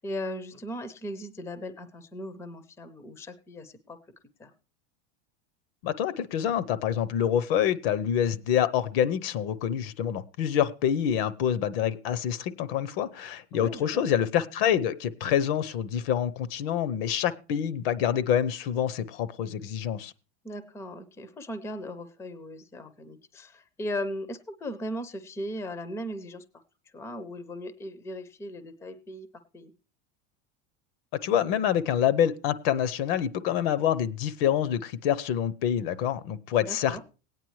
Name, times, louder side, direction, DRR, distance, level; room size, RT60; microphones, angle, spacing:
voice 1, 0.0-4.0 4.4-4.5 13.5-14.0 20.4-26.4 26.9-29.3 29.5-29.7 36.7-37.0, left 1 dB, 10° left, 13 dB, 0.5 m, -38 dB
voice 2, 5.8-20.1 31.2-37.0, left 9 dB, 65° left, 17 dB, 0.8 m, -26 dB
17.0 x 9.2 x 3.1 m, 0.33 s
supercardioid pair, 155°, 32 cm